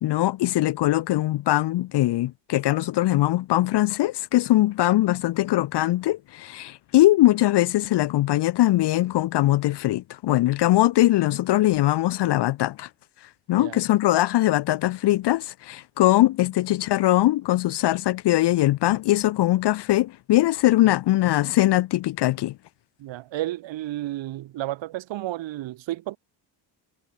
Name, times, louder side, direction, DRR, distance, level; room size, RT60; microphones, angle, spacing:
voice 1, 0.0-12.9 13.5-22.5, left 15 dB, 55° left, 0.8 m, -21 dB
voice 2, 23.0-26.2, right 15 dB, 65° right, 2.0 m, -32 dB
cardioid pair, 140°, 47 cm